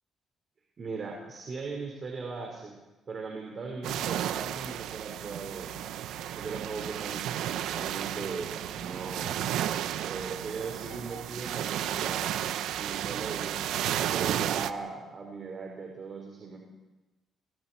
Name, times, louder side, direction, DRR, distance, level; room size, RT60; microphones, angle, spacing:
voice 1, 0.8-2.8 3.1-5.7 6.4-9.5 10.0-12.3 12.8-13.6 14.1-16.6, right 4 dB, 45° right, 0 dB, 4.7 m, -39 dB
sound 1, 3.8-14.7, right 11 dB, 85° right, 0.8 m, -33 dB
28.5 x 22.5 x 4.5 m, 1.1 s
cardioid pair, 90°, 0 cm